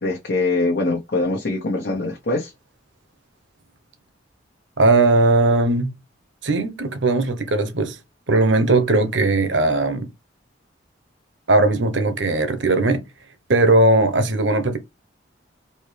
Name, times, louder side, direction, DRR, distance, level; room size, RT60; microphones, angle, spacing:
voice 1, 0.0-2.5, left 2 dB, 60° left, 1.0 m, -23 dB
voice 2, 4.8-5.9 6.4-8.0 8.3-10.1 11.5-13.0 13.5-14.8, right 2 dB, 75° right, 0.9 m, -18 dB
4.3 x 2.8 x 3.3 m
head